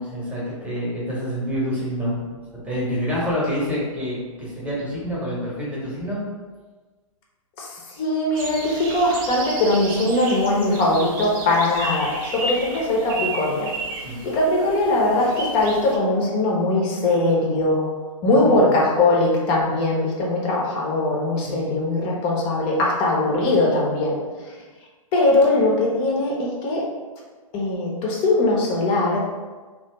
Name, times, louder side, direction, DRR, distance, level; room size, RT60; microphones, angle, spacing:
voice 1, 0.0-2.3 2.6-6.2 14.0-14.2 18.3-18.7 21.4-21.7, equal, 5° right, -6 dB, 1.0 m, -27 dB
voice 2, 7.6-13.7 14.2-17.9 18.2-24.2 25.1-26.8 27.5-29.3, left 2 dB, 30° left, -2 dB, 0.7 m, -21 dB
sound 1, 8.3-16.0, right 2 dB, 35° right, 0.6 m, -33 dB
2.8 x 2.4 x 3.3 m, 1.4 s
hypercardioid pair, 125°, 18 cm